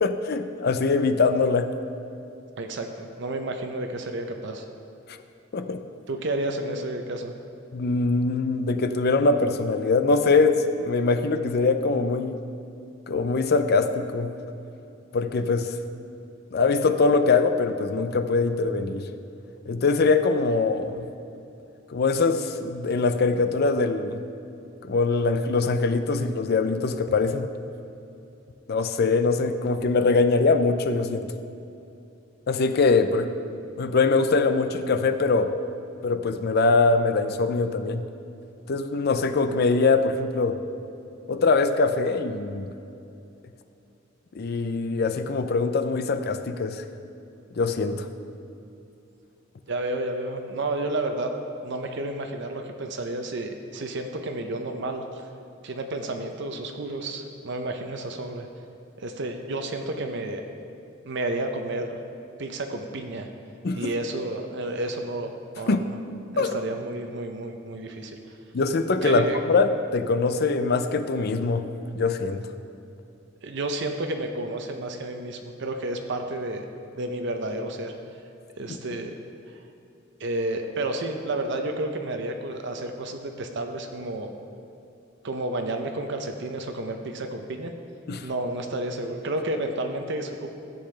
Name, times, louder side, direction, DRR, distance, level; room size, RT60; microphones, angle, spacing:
voice 1, 0.0-1.7 5.5-5.8 7.7-12.4 13.1-14.3 15.1-15.7 16.5-19.1 19.7-21.1 21.9-24.2 24.8-27.5 28.7-31.3 32.5-33.3 33.8-35.6 36.0-38.0 38.7-40.6 41.3-42.7 44.3-46.8 47.6-48.1 63.6-63.9 65.7-65.8 66.4-66.6 68.5-71.6 72.0-72.4 78.7-78.8 88.1-88.3, left 3 dB, 55° left, 9 dB, 0.5 m, -23 dB
voice 2, 2.6-4.6 6.1-7.3 49.7-51.3 51.6-55.0 55.6-58.5 59.0-60.4 61.1-62.0 62.4-63.3 63.7-66.0 66.3-68.2 69.0-69.4 73.4-76.6 77.0-77.9 78.6-79.1 79.5-79.6 80.2-84.3 85.2-87.7 88.2-90.5, right 2 dB, 60° right, 5 dB, 0.6 m, -31 dB
13.5 x 7.9 x 3.3 m, 2.7 s
head